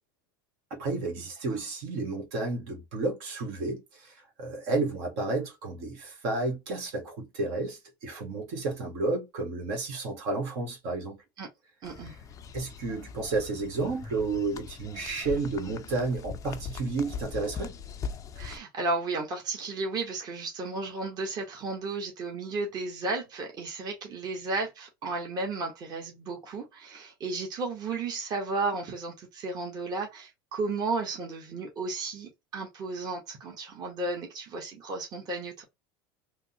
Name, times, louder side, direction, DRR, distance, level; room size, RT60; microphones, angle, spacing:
voice 1, 0.7-11.2 12.5-17.8, right 3 dB, 65° right, 1.5 m, -31 dB
sound 1, 11.8-18.6, left 6 dB, 30° left, 0.4 m, -41 dB
voice 2, 11.8-12.1 18.3-35.6, right 3 dB, 35° right, 1.1 m, -33 dB
3.4 x 2.1 x 2.8 m
supercardioid pair, 115°, 12 cm